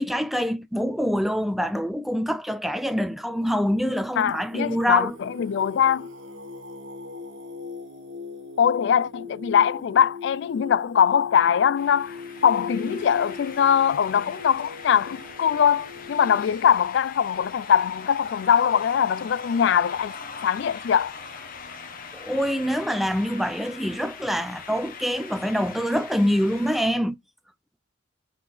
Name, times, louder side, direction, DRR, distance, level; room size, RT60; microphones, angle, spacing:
voice 1, 0.0-5.2 22.1-27.2, equal, ahead, 0.5 m, -25 dB
Singing, 2.8-16.5, left 4 dB, 70° right, 1.6 m, -40 dB
voice 2, 4.2-6.1 8.6-20.1 20.4-21.1, left 8 dB, 65° left, 0.3 m, -22 dB
sound 1, 11.8-26.9, left 5 dB, 45° left, 1.1 m, -41 dB
5.6 x 4.1 x 4.3 m
head